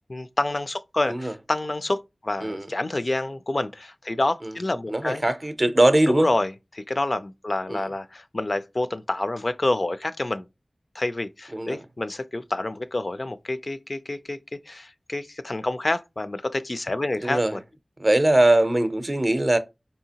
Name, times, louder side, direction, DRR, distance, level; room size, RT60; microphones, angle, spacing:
voice 1, 0.1-5.2 6.2-10.5 11.0-17.4, left 2 dB, 50° left, 0.3 m, -28 dB
voice 2, 4.9-6.3 7.7-7.9 11.5-11.9 17.1-17.6 18.0-19.6, right 1 dB, 40° right, 0.5 m, -21 dB
4.1 x 2.7 x 2.8 m
wide cardioid pair, 60°, 0 cm